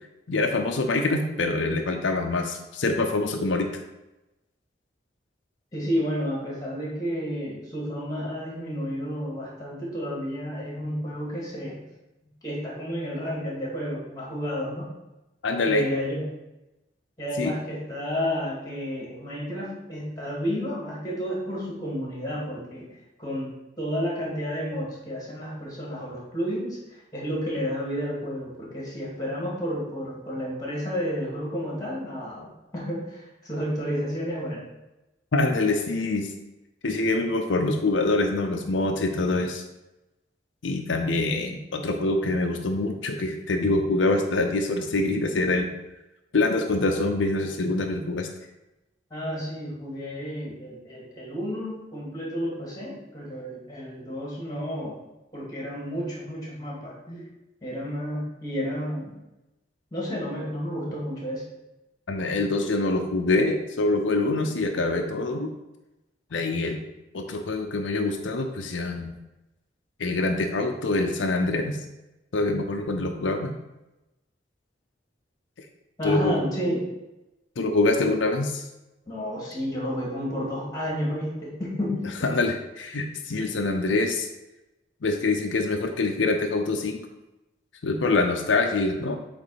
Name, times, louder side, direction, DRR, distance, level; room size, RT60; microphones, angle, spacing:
voice 1, 0.3-3.8 15.4-15.9 17.4-17.5 35.3-36.3 36.8-39.6 40.6-45.7 46.3-48.3 62.1-65.5 66.3-66.8 67.1-69.1 70.0-71.8 72.3-73.5 76.0-76.4 77.6-78.6 82.2-84.3 85.0-87.0 87.8-89.2, left 2 dB, 85° left, 4 dB, 0.6 m, -25 dB
voice 2, 5.7-11.8 12.4-14.9 15.7-16.3 17.2-22.9 23.2-26.8 27.1-34.7 49.1-55.0 55.3-57.3 57.6-59.1 59.9-61.5 76.0-76.9 79.1-82.1, equal, 20° left, -3 dB, 2.2 m, -31 dB
8.1 x 3.3 x 4.9 m, 0.97 s
head